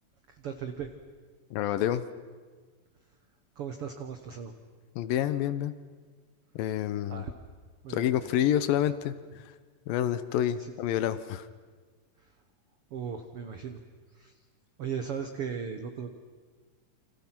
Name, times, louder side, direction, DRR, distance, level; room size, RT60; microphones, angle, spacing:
voice 1, 0.3-0.9 3.6-4.5 7.1-7.3 7.8-8.3 10.6-10.7 12.2-12.3 12.9-13.8 14.1-14.4 14.8-16.1, right 7 dB, 85° right, 7 dB, 1.2 m, -37 dB
voice 2, 1.5-2.0 5.0-5.7 6.6-7.2 7.9-9.4 9.9-11.5, left 11 dB, 75° left, 13 dB, 2.4 m, -28 dB
29.5 x 25.5 x 5.9 m, 1.5 s
omnidirectional pair, 4.4 m